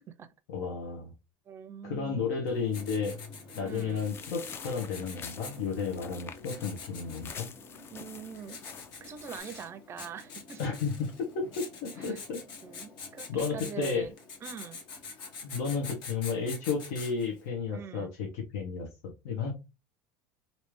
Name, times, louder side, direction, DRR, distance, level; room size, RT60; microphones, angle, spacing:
voice 1, 0.5-1.1 1.8-3.1 3.5-7.5 10.6-12.4 13.3-14.1 15.4-19.5, left 5 dB, 80° left, 1.2 m, -33 dB
voice 2, 1.5-2.3 3.6-4.1 7.9-8.6 9.0-10.6 12.0-12.2 12.6-14.1 14.4-14.8 17.7-18.1, right 7 dB, 30° right, 0.5 m, -43 dB
Writing, 2.5-17.4, left 4 dB, 55° left, 1.1 m, -45 dB
sound 1, 4.0-9.4, left 6 dB, 25° left, 0.4 m, -47 dB
3.2 x 2.8 x 3.2 m
cardioid pair, 145°, 9 cm